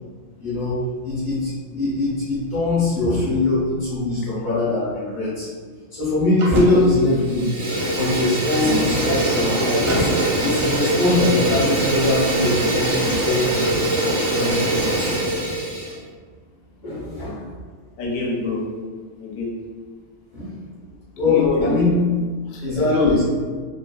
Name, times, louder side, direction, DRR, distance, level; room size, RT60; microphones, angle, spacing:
voice 1, 0.4-1.5 1.8-5.5 5.9-7.6 7.9-10.1 10.4-13.7 14.0-15.1 16.8-17.5 20.3-20.5 21.2-22.0 22.6-23.2, left 2 dB, 40° left, -10 dB, 0.8 m, -22 dB
Fire, 6.4-6.9 7.2-16.0, right 1 dB, 85° right, 1.2 m, -22 dB
voice 2, 18.0-18.7 19.2-19.5 21.2-21.8 22.5-23.2, left 3 dB, 75° left, -2 dB, 1.0 m, -24 dB
2.7 x 2.3 x 2.2 m, 1.5 s
omnidirectional pair, 1.4 m